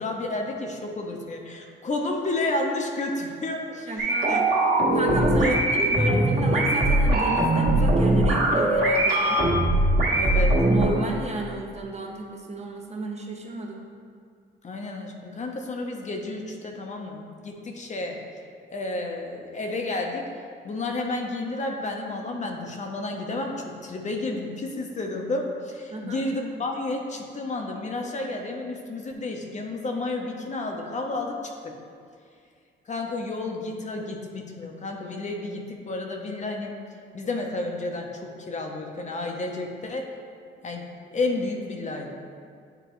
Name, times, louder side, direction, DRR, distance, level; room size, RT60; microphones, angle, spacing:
voice 1, 0.0-4.8 5.3-5.6 10.1-10.6 14.6-18.2 18.7-20.3 20.6-31.5 32.9-36.7 37.1-40.1 40.6-42.1, left 2 dB, 35° left, 2 dB, 0.8 m, -31 dB
voice 2, 3.9-4.5 4.9-9.4 10.6-13.8 25.9-26.2, right 2 dB, 35° right, 1 dB, 0.8 m, -32 dB
sound 1, 4.0-10.9, right 1 dB, 50° right, 1.5 m, -21 dB
9.0 x 3.8 x 3.1 m, 2.2 s
cardioid pair, 90°, 20 cm